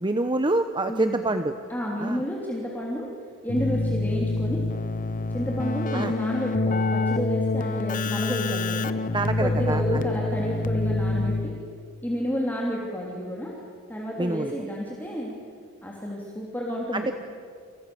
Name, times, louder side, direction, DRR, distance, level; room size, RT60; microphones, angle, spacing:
voice 1, 0.0-1.5 2.0-2.2 5.9-6.1 9.1-10.0 14.2-14.5 16.9-17.1, right 2 dB, 20° right, 7 dB, 1.0 m, -26 dB
voice 2, 0.9-1.2 1.7-3.1 3.4-4.6 5.3-9.0 9.4-11.5 12.0-13.5 13.9-15.3 15.8-17.1, equal, 10° left, -3 dB, 3.4 m, -30 dB
Keyboard (musical), 3.5-11.8, left 2 dB, 40° left, 1.0 m, -26 dB
29.5 x 28.5 x 7.1 m, 2.2 s
head